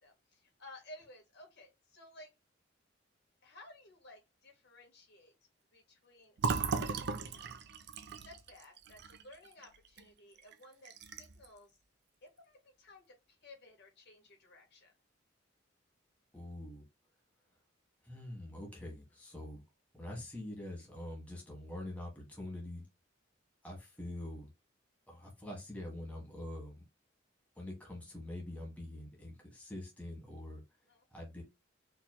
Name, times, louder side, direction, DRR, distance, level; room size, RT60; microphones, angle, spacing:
voice 1, 0.0-2.3 3.4-5.3 5.7-7.0 7.3-7.5 8.2-11.8 12.2-14.9 30.9-31.0, left 1 dB, 60° left, 1.6 m, -56 dB
Fill (with liquid), 6.4-10.0 10.4-10.5 10.8-11.5, right 4 dB, 60° right, 0.5 m, -37 dB
voice 2, 16.3-16.8 18.0-19.6 19.9-22.9 23.6-24.5 25.1-26.8 27.6-30.6 31.1-31.4, left 1 dB, 10° left, 1.4 m, -45 dB
4.5 x 3.1 x 2.2 m
head